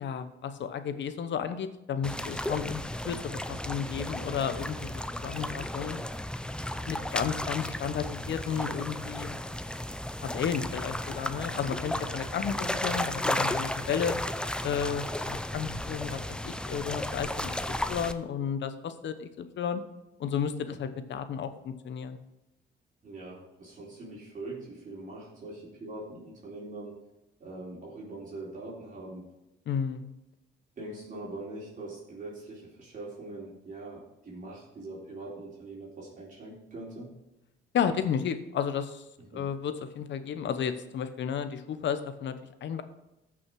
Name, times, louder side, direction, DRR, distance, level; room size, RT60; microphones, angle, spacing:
voice 1, 0.0-6.0 6.8-9.4 10.2-14.1 14.6-17.6 17.9-19.8 20.2-22.2 29.7-30.1 37.7-39.0 39.3-42.3 42.6-42.8, left 7 dB, 65° left, 10 dB, 1.0 m, -33 dB
sound 1, 2.0-18.1, left 1 dB, 5° left, 0.6 m, -34 dB
voice 2, 23.0-26.9 27.4-29.3 30.8-37.1 39.3-39.5, right 2 dB, 40° right, -6 dB, 4.0 m, -42 dB
14.0 x 6.1 x 4.7 m, 0.94 s
cardioid pair, 90°, 20 cm